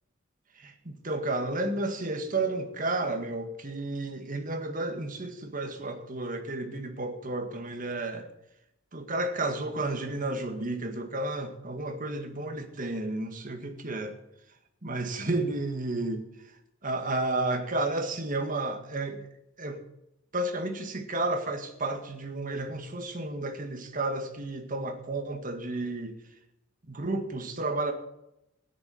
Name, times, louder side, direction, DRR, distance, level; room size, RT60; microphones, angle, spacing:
voice 1, 0.6-8.3 8.9-14.2 14.8-16.2 16.8-19.2 19.6-19.8 20.3-26.2 26.9-27.9, right 2 dB, 45° right, 6 dB, 1.8 m, -32 dB
15.5 x 10.5 x 5.4 m, 0.84 s
head